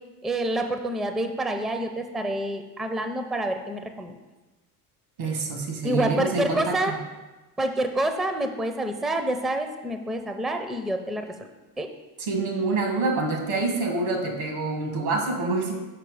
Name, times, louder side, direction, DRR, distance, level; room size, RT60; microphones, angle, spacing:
voice 1, 0.2-4.1 5.8-6.9 7.6-11.2 11.8-11.9, right 1 dB, ahead, 6 dB, 0.4 m, -27 dB
voice 2, 5.2-7.0 12.2-15.7, right 3 dB, 80° right, 2 dB, 1.8 m, -26 dB
5.9 x 4.8 x 4.8 m, 1.1 s
hypercardioid pair, 80°, 47 cm